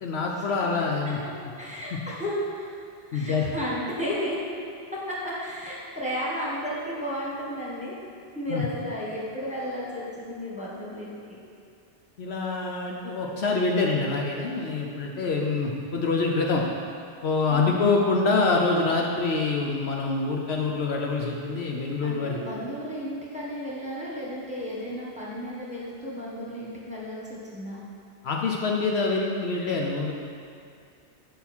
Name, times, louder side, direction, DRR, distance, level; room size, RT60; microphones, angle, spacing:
voice 1, 0.0-1.2 3.1-3.5 8.5-8.6 12.2-16.6 17.2-22.4 28.2-30.1, left 3 dB, 65° left, 0 dB, 0.9 m, -25 dB
voice 2, 1.4-2.7 3.1-4.4 4.9-8.0 8.3-11.1 22.0-27.8, equal, 5° right, -7 dB, 1.3 m, -33 dB
7.8 x 5.5 x 4.4 m, 2.4 s
omnidirectional pair, 1.2 m